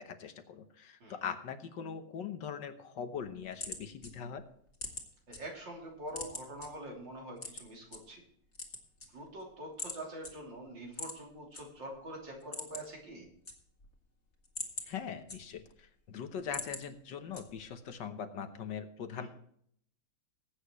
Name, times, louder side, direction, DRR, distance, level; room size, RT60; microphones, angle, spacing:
voice 1, 0.0-4.4 14.9-19.3, left 7 dB, 70° left, 8 dB, 1.7 m, -41 dB
sound 1, 3.1-5.4 5.8-6.7 7.4-8.0 8.4-9.4 9.8-10.0 10.2-10.3 10.9-11.6 12.0-12.1 12.4-13.0 13.3-13.9 14.3-15.8 16.2-16.8 17.3-17.8, left 3 dB, 35° left, 2.2 m, -42 dB
voice 2, 5.3-8.2 9.1-13.3 19.2-19.3, right 1 dB, 75° right, -1 dB, 3.7 m, -45 dB
19.0 x 8.9 x 3.1 m, 0.67 s
omnidirectional pair, 2.0 m